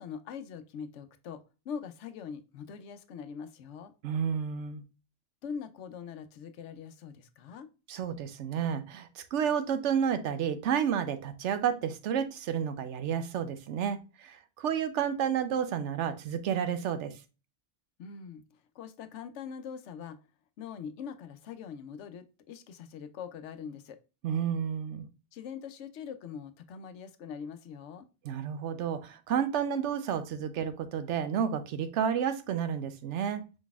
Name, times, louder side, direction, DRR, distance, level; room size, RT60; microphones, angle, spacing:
voice 1, 0.0-3.9 5.4-7.7 18.0-20.2 20.6-24.0 25.3-28.1, left 7 dB, 85° left, 10 dB, 0.9 m, -43 dB
voice 2, 4.0-4.8 7.9-17.1 24.2-25.1 28.2-33.6, right 8 dB, 85° right, 11 dB, 0.9 m, -31 dB
4.9 x 3.9 x 2.3 m, 0.30 s
omnidirectional pair, 1.2 m